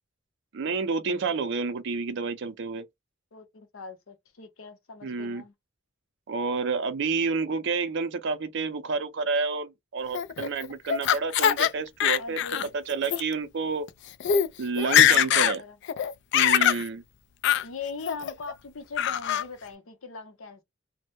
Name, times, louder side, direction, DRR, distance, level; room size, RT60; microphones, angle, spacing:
voice 1, 0.5-2.8 5.0-5.4 6.3-12.4 12.7-13.9 14.6-15.6 16.3-17.0, right 4 dB, 60° right, 0.5 m, -29 dB
voice 2, 3.3-5.5 12.2-12.7 15.0-15.8 17.6-20.6, left 4 dB, 80° left, 0.7 m, -41 dB
Laughter, 10.1-11.7 12.0-12.7 13.0-13.2 13.9-14.0 14.2-14.5 14.8-15.6 15.9-16.8 17.4-17.6 18.1-18.5 19.0-19.4, left 10 dB, 60° left, 0.3 m, -22 dB
2.1 x 2.0 x 2.9 m
head